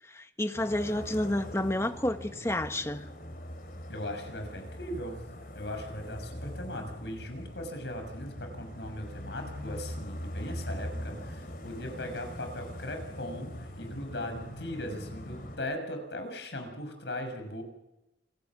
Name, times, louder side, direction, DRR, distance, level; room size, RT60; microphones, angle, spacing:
voice 1, 0.0-3.1, left 1 dB, 15° left, 9 dB, 1.2 m, -30 dB
sound 1, 0.5-15.6, equal, 50° left, 4.4 m, -42 dB
voice 2, 3.9-5.2 5.5-17.6, left 1 dB, 75° left, 5 dB, 6.2 m, -39 dB
28.0 x 17.5 x 7.3 m, 0.90 s
head